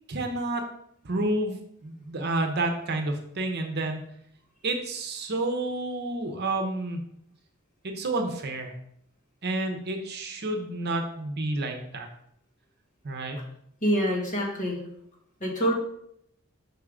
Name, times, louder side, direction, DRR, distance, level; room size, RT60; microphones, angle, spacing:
voice 1, 0.1-0.6 1.0-1.6 1.8-4.0 4.6-7.0 7.8-8.7 9.4-12.1 13.0-13.4, right 2 dB, 50° right, 4 dB, 0.8 m, -29 dB
voice 2, 13.8-14.8 15.4-15.7, equal, 40° left, -2 dB, 1.7 m, -25 dB
5.6 x 4.7 x 3.7 m, 0.72 s
head